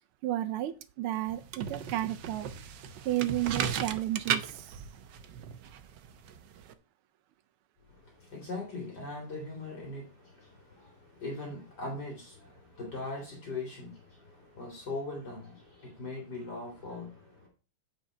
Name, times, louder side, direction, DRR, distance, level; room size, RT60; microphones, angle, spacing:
voice 1, 0.2-2.5 3.0-4.8, right 14 dB, 80° right, 1.5 m, -32 dB
sound 1, 1.3-6.7, right 8 dB, 65° right, 1.3 m, -36 dB
voice 2, 7.9-17.5, left 2 dB, 50° left, 3.2 m, -41 dB
9.0 x 5.7 x 4.8 m
omnidirectional pair, 2.4 m